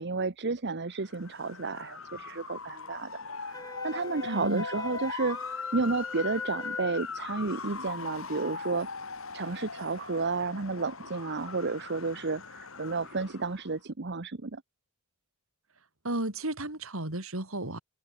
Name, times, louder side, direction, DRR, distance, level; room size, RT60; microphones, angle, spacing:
voice 1, 0.0-3.1 3.4-8.9 9.3-14.6, right 3 dB, 55° right, 1.0 m, -32 dB
Motor vehicle (road) / Siren, 1.0-13.7, left 4 dB, 70° left, 5.7 m, -40 dB
Wind instrument woodwind instrument, 3.5-6.9, left 3 dB, 15° left, 3.8 m, -43 dB
voice 2, 4.3-4.6 16.0-17.8, right 1 dB, 75° right, 4.0 m, -33 dB
open air
head